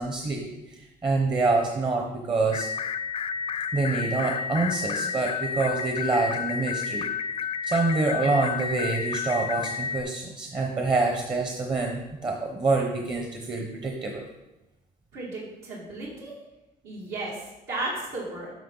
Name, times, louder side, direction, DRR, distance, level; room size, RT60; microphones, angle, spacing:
voice 1, 0.0-2.7 3.7-7.1 7.6-14.2, right 3 dB, 30° right, 1 dB, 0.9 m, -26 dB
sound 1, 2.5-10.0, left 7 dB, 35° left, 0.4 m, -31 dB
voice 2, 15.1-16.3 16.8-18.5, right 2 dB, 80° right, -6 dB, 2.7 m, -34 dB
9.3 x 5.5 x 3.9 m, 0.98 s
cardioid pair, 110°, 17 cm